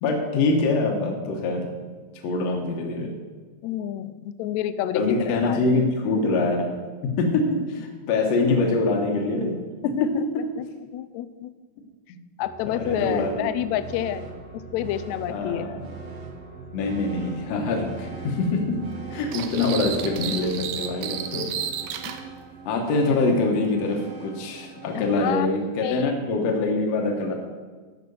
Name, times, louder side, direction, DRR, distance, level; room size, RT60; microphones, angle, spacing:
voice 1, 0.0-1.7 2.2-3.1 4.9-6.8 7.2-10.4 12.1-12.2 12.7-13.5 15.3-15.8 16.7-21.5 22.7-27.3, left 3 dB, 60° left, 1 dB, 2.2 m, -24 dB
voice 2, 3.6-5.6 9.8-10.1 10.6-10.7 10.9-11.5 12.4-14.3 14.7-15.7 22.0-22.1 24.9-25.5 25.8-26.1, left 12 dB, 80° left, 12 dB, 1.7 m, -29 dB
sound 1, 12.4-26.0, right 4 dB, 60° right, 2.4 m, -41 dB
sound 2, 19.3-22.2, right 9 dB, 85° right, 2.3 m, -32 dB
12.5 x 6.0 x 7.0 m, 1.4 s
omnidirectional pair, 3.7 m